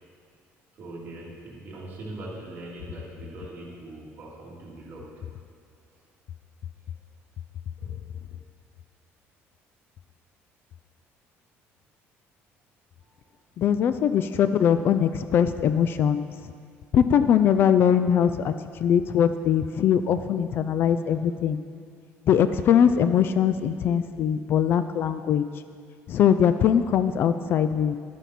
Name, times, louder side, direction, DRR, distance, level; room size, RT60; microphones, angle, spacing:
voice 1, 0.7-5.2 7.8-8.0 8.3-8.4 13.0-13.2, right 2 dB, 40° right, -5 dB, 2.5 m, -41 dB
voice 2, 13.6-16.5 16.9-21.6 22.3-25.5 26.1-27.9, left 8 dB, 45° left, 11 dB, 0.3 m, -21 dB
11.5 x 9.1 x 4.2 m, 2.2 s
cardioid pair, 155°, 5 cm